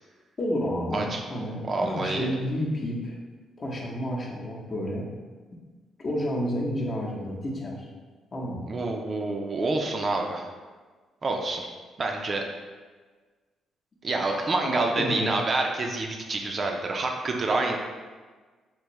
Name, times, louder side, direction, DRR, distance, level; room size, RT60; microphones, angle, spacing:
voice 1, 0.4-3.1 3.6-5.1 6.0-7.9 8.3-8.8 14.2-15.3, equal, 40° left, -3 dB, 0.8 m, -30 dB
voice 2, 1.7-2.3 8.7-10.4 11.2-11.7 12.0-12.5 14.0-17.8, right 2 dB, 40° right, 2 dB, 0.4 m, -27 dB
3.5 x 2.6 x 3.0 m, 1.4 s
cardioid pair, 90°, 0 cm